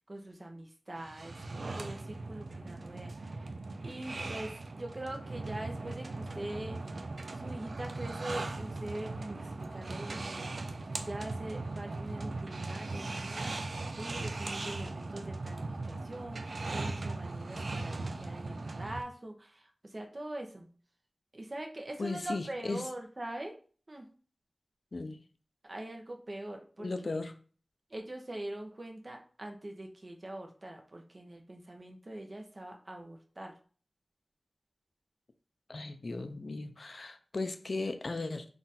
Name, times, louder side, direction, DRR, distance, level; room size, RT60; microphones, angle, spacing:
voice 1, 0.0-3.6 3.8-7.0 7.4-20.7 21.3-23.6 23.9-24.1 25.6-27.2 27.9-33.5, right 1 dB, 40° right, 0.7 m, -43 dB
sound 1, 1.0-19.0, right 3 dB, 65° right, 0.4 m, -39 dB
voice 2, 22.0-22.8 24.9-25.2 26.8-27.3 35.7-38.5, left 3 dB, 55° left, 0.4 m, -36 dB
3.9 x 2.4 x 4.0 m
wide cardioid pair, 70°, 0 cm